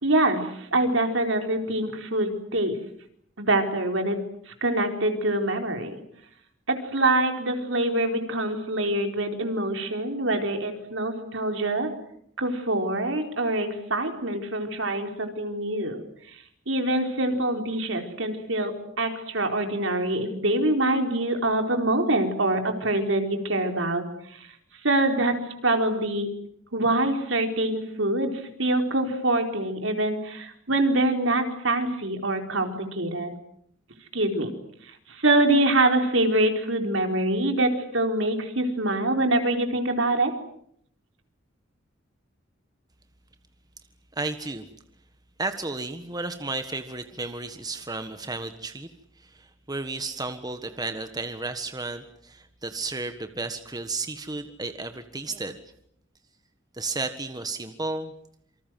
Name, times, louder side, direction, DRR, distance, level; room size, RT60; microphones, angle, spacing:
voice 1, 0.0-2.8 3.4-4.2 4.5-6.0 6.7-11.9 12.4-16.0 16.7-24.4 24.8-26.3 26.7-33.3 34.1-34.5 35.1-40.3, right 2 dB, 70° right, 5 dB, 4.4 m, -25 dB
voice 2, 44.1-44.6 45.4-48.9 49.2-55.6 56.7-58.1, right 3 dB, 20° right, 8 dB, 1.5 m, -33 dB
27.5 x 25.5 x 7.7 m, 0.68 s
head